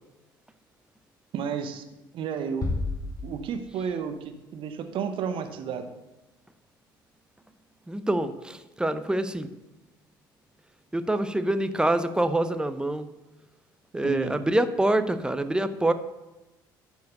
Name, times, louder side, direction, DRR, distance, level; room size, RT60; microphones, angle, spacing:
voice 1, 1.3-1.8 2.1-2.7 3.2-5.9 14.0-14.3, right 7 dB, 50° right, 7 dB, 0.9 m, -32 dB
sound 1, 2.6-4.2, left 2 dB, 30° left, 1.4 m, -32 dB
voice 2, 7.9-9.5 10.9-13.1 13.9-15.9, right 1 dB, 10° right, 11 dB, 0.7 m, -26 dB
10.5 x 4.7 x 6.6 m, 1.0 s
figure-of-eight pair, 55°, 11 cm